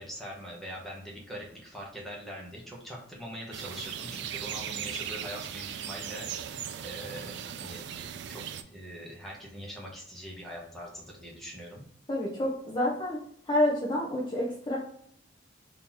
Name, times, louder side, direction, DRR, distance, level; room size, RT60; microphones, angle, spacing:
voice 1, 0.0-6.5 6.8-7.8 8.3-8.4 8.7-11.8, equal, ahead, -3 dB, 0.9 m, -42 dB
sound 1, 3.5-8.6, right 9 dB, 65° right, 0.3 m, -38 dB
voice 2, 12.1-13.2 13.5-14.8, left 1 dB, 25° left, -3 dB, 0.7 m, -28 dB
2.9 x 2.8 x 3.8 m, 0.65 s
head